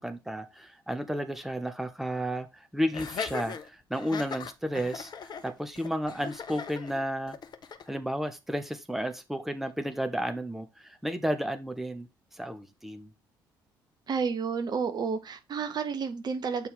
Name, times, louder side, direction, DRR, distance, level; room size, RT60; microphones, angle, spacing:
voice 1, 0.0-7.4 7.9-12.1 12.3-13.1, equal, 5° right, 1.0 m, -32 dB
Laughter, 2.9-7.9, left 6 dB, 40° left, 0.8 m, -39 dB
voice 2, 14.1-16.7, right 5 dB, 40° right, 1.1 m, -31 dB
8.3 x 4.6 x 3.6 m
figure-of-eight pair, 45°, 11 cm